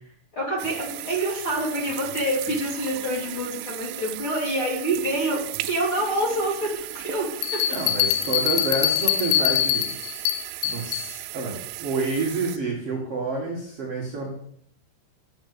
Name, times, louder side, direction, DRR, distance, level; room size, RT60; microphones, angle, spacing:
voice 1, 0.3-7.8, right 1 dB, 35° left, -4 dB, 2.7 m, -27 dB
sound 1, 0.6-12.6, right 17 dB, 85° right, 3.1 m, -36 dB
sound 2, 7.4-11.1, left 12 dB, 90° left, 3.2 m, -24 dB
voice 2, 7.7-9.9 10.6-14.3, right 3 dB, 55° right, -2 dB, 1.6 m, -28 dB
9.9 x 7.8 x 6.8 m, 0.67 s
omnidirectional pair, 5.6 m